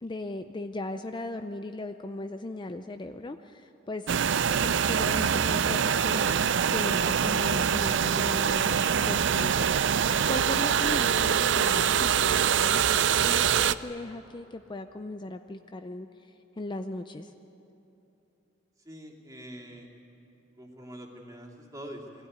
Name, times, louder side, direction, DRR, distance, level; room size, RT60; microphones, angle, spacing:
voice 1, 0.0-4.1 4.5-17.3, left 2 dB, 25° left, 7 dB, 0.5 m, -38 dB
sound 1, 4.1-13.7, right 8 dB, 75° right, 0.5 m, -24 dB
voice 2, 18.8-19.9 20.6-22.3, equal, 20° right, -2 dB, 2.7 m, -44 dB
22.0 x 16.0 x 9.5 m, 2.9 s
head